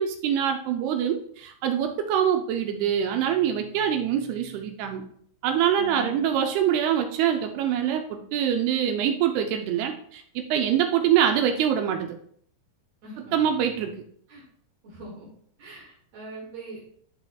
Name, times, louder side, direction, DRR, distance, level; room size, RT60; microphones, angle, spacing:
voice 1, 0.0-5.0 5.4-10.2 10.5-12.2 13.3-13.9, right 9 dB, 80° right, 5 dB, 2.3 m, -24 dB
voice 2, 5.8-6.2 13.0-13.3 14.3-14.4 14.8-15.3 15.6-16.8, right 1 dB, 65° right, -7 dB, 3.5 m, -41 dB
13.0 x 4.4 x 2.3 m, 0.63 s
omnidirectional pair, 5.1 m